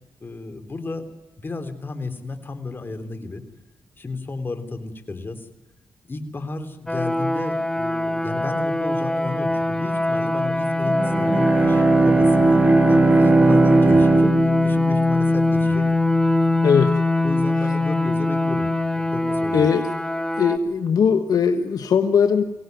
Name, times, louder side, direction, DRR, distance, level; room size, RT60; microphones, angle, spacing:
voice 1, 0.2-1.1 1.4-3.4 4.0-5.5 6.1-12.6 12.9-15.9 17.2-18.7 18.9-19.7, left 3 dB, 30° left, 8 dB, 3.5 m, -32 dB
sound 1, 6.9-20.6, left 2 dB, 10° left, 1.7 m, -22 dB
Bowed string instrument, 10.8-15.6, right 3 dB, 25° right, 0.8 m, -19 dB
voice 2, 16.6-16.9 19.5-19.9 20.4-22.4, left 6 dB, 65° left, 7 dB, 1.4 m, -19 dB
24.0 x 18.0 x 9.3 m, 1.1 s
cardioid pair, 80°, 7 cm